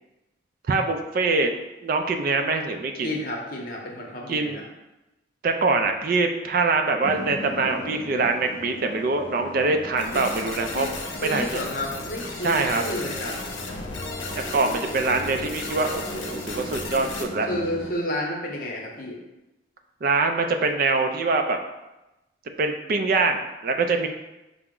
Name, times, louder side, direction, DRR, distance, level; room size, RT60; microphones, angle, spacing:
voice 1, 0.7-1.5 1.8-3.1 4.3-4.6 5.4-10.9 11.2-11.6 12.4-12.8 14.5-17.5 20.0-21.6 22.6-24.1, right 3 dB, 45° right, 5 dB, 0.3 m, -24 dB
voice 2, 3.0-4.6 10.1-10.2 10.7-10.9 11.2-13.4 17.5-19.2, left 1 dB, 45° left, -1 dB, 0.8 m, -31 dB
sound 1, 7.0-17.9, left 1 dB, 30° left, 0.4 m, -37 dB
sound 2, 10.0-17.2, left 3 dB, 85° left, 0.6 m, -36 dB
5.6 x 2.0 x 3.6 m, 0.99 s
head